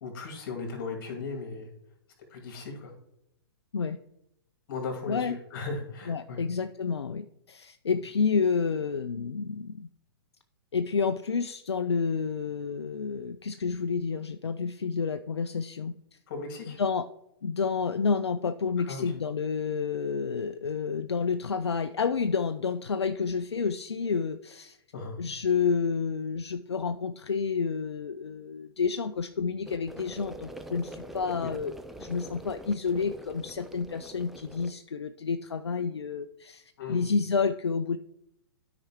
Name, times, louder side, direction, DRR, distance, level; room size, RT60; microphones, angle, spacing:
voice 1, 0.0-1.7 2.3-2.9 4.7-6.4 16.3-16.8 18.9-19.1 24.9-25.2 31.4-31.5 36.8-37.1, left 4 dB, 50° left, 1 dB, 2.3 m, -37 dB
voice 2, 5.1-5.4 6.1-9.9 10.7-15.9 16.7-17.1 17.4-24.8 25.2-31.7 32.0-38.0, left 5 dB, 80° left, 9 dB, 0.4 m, -29 dB
sound 1, 29.6-34.7, right 1 dB, ahead, 0.3 m, -44 dB
12.5 x 5.0 x 2.9 m, 0.81 s
figure-of-eight pair, 115°, 14 cm